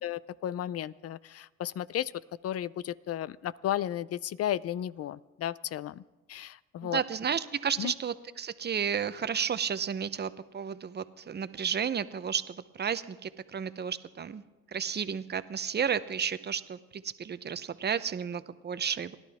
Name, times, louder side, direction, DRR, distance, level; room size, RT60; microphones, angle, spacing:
voice 1, 0.0-2.1 2.4-6.0 6.3-7.0 7.8-7.9, left 11 dB, 55° left, 20 dB, 0.5 m, -34 dB
voice 2, 6.8-14.4 14.7-19.2, right 7 dB, 35° right, 13 dB, 0.7 m, -32 dB
30.0 x 11.5 x 3.6 m, 1.2 s
cardioid pair, 90°, 30 cm